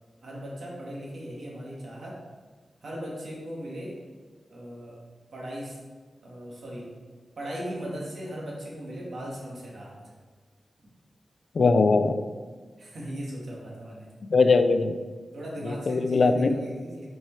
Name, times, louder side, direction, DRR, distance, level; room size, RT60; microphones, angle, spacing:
voice 1, 0.2-2.2 2.8-4.0 4.5-5.0 5.3-5.8 6.2-6.9 7.4-10.0 12.8-14.1 15.3-17.1, equal, 70° right, -4 dB, 1.7 m, -38 dB
voice 2, 11.5-12.2 14.3-14.9 15.6-16.6, left 4 dB, 55° left, 9 dB, 0.4 m, -21 dB
7.5 x 4.5 x 3.2 m, 1.4 s
wide cardioid pair, 140°, 0 cm